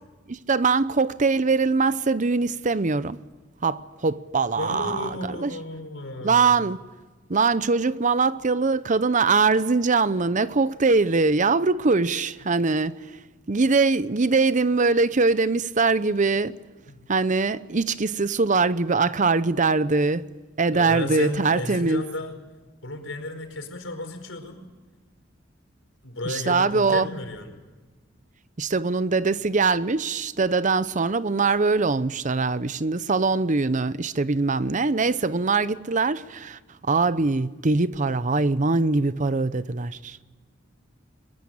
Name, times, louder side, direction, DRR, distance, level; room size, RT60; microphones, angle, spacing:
voice 1, 0.3-3.2 3.6-5.5 6.2-6.8 7.3-13.2 13.5-16.6 17.1-20.3 20.6-22.0 26.2-27.1 28.6-40.2, right 4 dB, 40° right, 0.7 m, -22 dB
voice 2, 4.6-6.6 16.9-17.0 20.7-22.3 22.8-24.6 26.0-27.5, left 2 dB, 90° left, 4.9 m, -33 dB
22.5 x 21.5 x 8.8 m
head